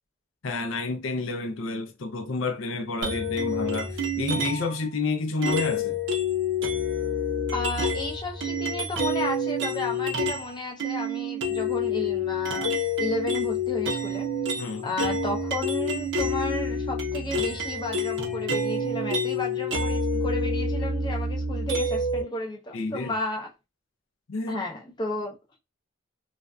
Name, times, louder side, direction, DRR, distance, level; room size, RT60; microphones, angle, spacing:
voice 1, 0.4-6.0 14.5-14.9 22.7-23.1 24.3-24.6, left 3 dB, 75° left, 0.5 m, -30 dB
sound 1, 3.0-4.8 5.4-10.5 10.8-22.2, left 2 dB, 60° right, 0.5 m, -28 dB
voice 2, 7.5-12.7 13.0-14.3 14.8-23.5 24.5-25.4, left 1 dB, 20° left, 0.5 m, -33 dB
2.5 x 2.3 x 2.2 m
head